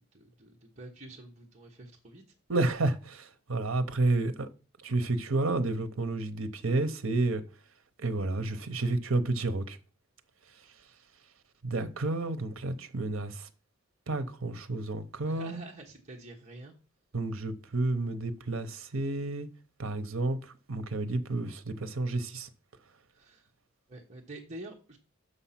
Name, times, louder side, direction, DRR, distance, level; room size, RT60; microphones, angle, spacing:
voice 1, 0.1-2.2 15.3-16.7 23.1-23.5 23.9-25.0, right 2 dB, 35° right, 1.2 m, -47 dB
voice 2, 2.5-4.5 4.8-7.4 8.0-9.8 11.6-13.5 14.1-15.6 17.1-19.5 19.8-22.5, right 2 dB, 75° right, 0.9 m, -30 dB
6.5 x 5.6 x 5.8 m
head